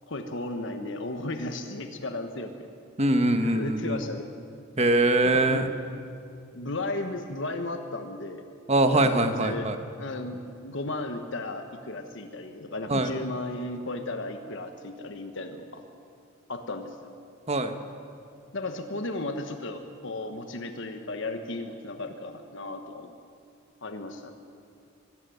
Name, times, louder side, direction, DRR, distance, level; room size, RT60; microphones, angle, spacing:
voice 1, 0.1-2.7 3.0-3.1 3.4-4.3 5.2-5.6 6.5-8.4 8.9-9.7 10.0-15.8 16.5-17.0 18.5-23.1 23.8-24.3, left 2 dB, 60° left, 6 dB, 1.3 m, -35 dB
voice 2, 3.0-4.0 4.8-5.7 8.7-9.8 12.9-13.1 17.5-17.8, right 2 dB, 30° right, 8 dB, 1.2 m, -23 dB
23.0 x 13.5 x 9.3 m, 2.5 s
head